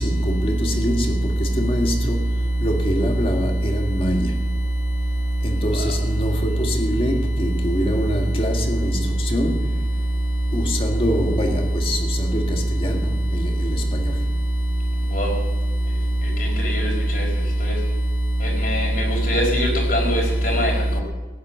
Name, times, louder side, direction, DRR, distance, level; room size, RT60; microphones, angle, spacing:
voice 1, 0.0-2.3 2.6-4.4 5.4-9.6 10.5-14.1, equal, 30° left, 3 dB, 1.8 m, -25 dB
voice 2, 16.6-17.2 18.6-20.7, equal, 50° left, -1 dB, 4.7 m, -20 dB
15.5 x 10.5 x 6.5 m, 1.2 s
head